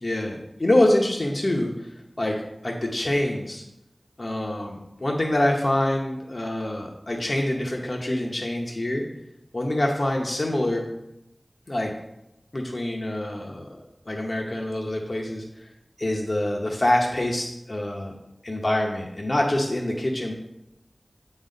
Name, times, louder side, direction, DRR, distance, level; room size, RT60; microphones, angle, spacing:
voice 1, 0.0-1.7 2.2-3.6 4.2-9.0 9.5-10.8 11.7-11.9 12.5-13.7 14.1-15.4 16.0-18.1 18.4-20.3, left 1 dB, 55° left, -1 dB, 0.8 m, -25 dB
8.0 x 4.0 x 5.2 m, 0.90 s
wide cardioid pair, 50°, 0 cm